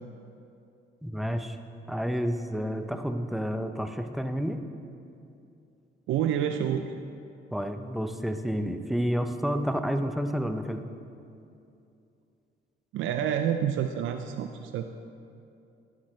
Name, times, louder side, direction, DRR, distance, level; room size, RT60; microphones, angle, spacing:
voice 1, 1.0-1.6 1.9-4.6 7.5-10.9, equal, ahead, 7 dB, 0.6 m, -30 dB
voice 2, 6.1-6.8 12.9-14.9, right 9 dB, 80° right, 7 dB, 0.5 m, -28 dB
11.5 x 11.0 x 3.2 m, 2.6 s
cardioid pair, 90°, 20 cm